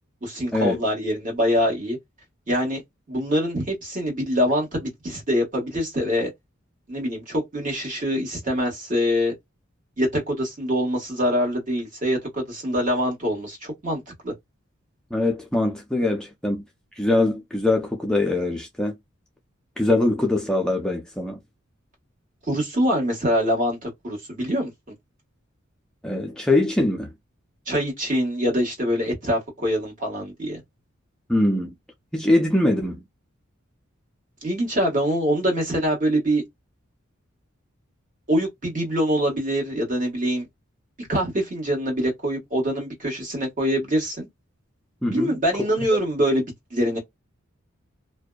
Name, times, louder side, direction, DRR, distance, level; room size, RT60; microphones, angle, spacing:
voice 1, 0.2-2.0 2.5-2.8 3.1-6.3 6.9-9.3 10.0-14.3 22.5-24.7 27.7-30.6 34.4-36.4 38.3-40.5 41.0-44.3 45.1-47.0, equal, 40° right, 1.5 m, -24 dB
voice 2, 15.1-16.6 17.0-18.9 19.8-21.4 26.0-27.1 31.3-31.7 32.1-33.0 45.0-45.3, left 2 dB, 5° left, 0.4 m, -22 dB
2.6 x 2.1 x 2.2 m
head